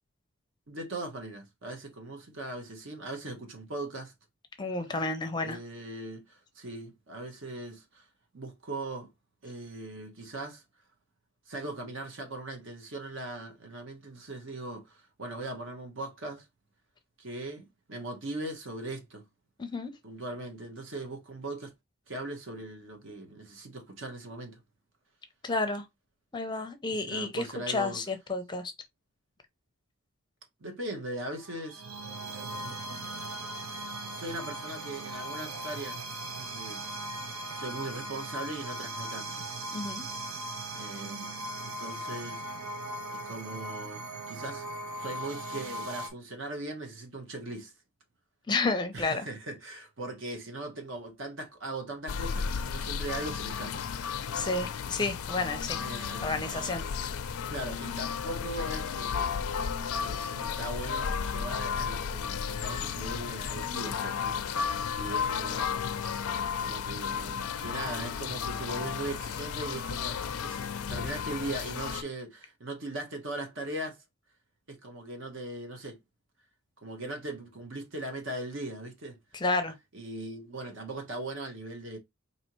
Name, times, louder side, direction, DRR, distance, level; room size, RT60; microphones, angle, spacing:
voice 1, 0.7-4.1 5.4-8.0 8.3-9.1 9.4-10.6 11.5-16.5 17.2-19.2 20.0-21.7 22.1-24.6 26.9-28.0 30.6-31.8 33.6-33.7 34.2-36.1 36.3-36.8 37.5-39.5 40.7-41.3 41.6-42.5 43.1-44.7 45.0-47.7 48.9-53.8 55.8-56.8 57.5-59.3 60.0-65.7 66.0-66.1 66.6-74.0 74.7-76.0 76.8-79.2 79.9-82.0, right 2 dB, 60° right, 1.1 m, -39 dB
voice 2, 4.6-5.6 19.6-19.9 25.4-25.8 26.3-28.7 39.7-40.0 48.5-49.2 54.3-55.8 56.2-56.8 79.3-79.7, left 3 dB, 20° left, 0.5 m, -31 dB
sound 1, 31.4-46.1, right 1 dB, 80° right, 0.8 m, -39 dB
sound 2, 52.1-72.0, left 6 dB, 90° left, 0.4 m, -33 dB
4.3 x 2.8 x 2.9 m
head